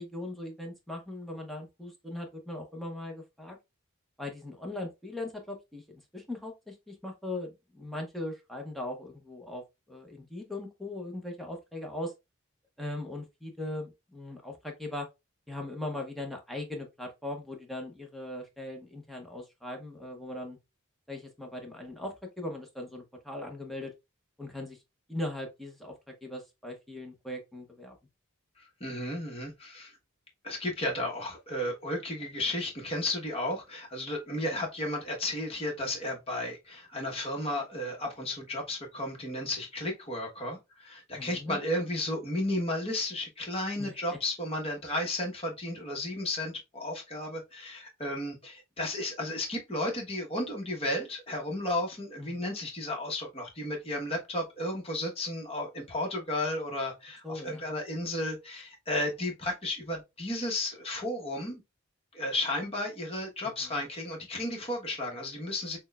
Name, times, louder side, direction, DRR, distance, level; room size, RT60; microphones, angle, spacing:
voice 1, 0.0-3.6 4.2-9.6 9.9-12.1 12.8-15.1 15.5-20.6 21.1-23.9 24.4-24.8 25.1-25.9 26.2-27.9 41.2-41.6 43.8-43.9 52.2-52.4 57.2-57.7 63.6-63.8, left 1 dB, ahead, 0.8 m, -39 dB
voice 2, 28.6-29.9 30.4-61.6 62.1-65.8, left 1 dB, 25° left, 1.0 m, -33 dB
6.0 x 2.2 x 2.3 m
head